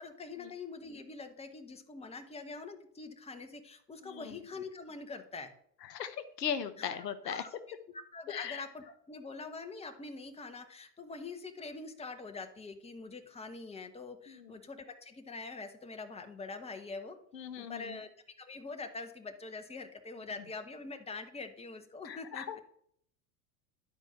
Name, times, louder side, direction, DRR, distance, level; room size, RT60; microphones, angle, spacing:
voice 1, 0.0-5.5 6.8-7.6 7.9-17.2 17.6-18.1 18.4-22.6, left 3 dB, 10° left, 7 dB, 1.1 m, -44 dB
voice 2, 5.9-7.4 8.3-8.6 14.3-14.5 17.3-18.0 22.0-22.6, left 8 dB, 80° left, 11 dB, 0.8 m, -38 dB
11.0 x 4.5 x 5.8 m, 0.66 s
hypercardioid pair, 80°, 48 cm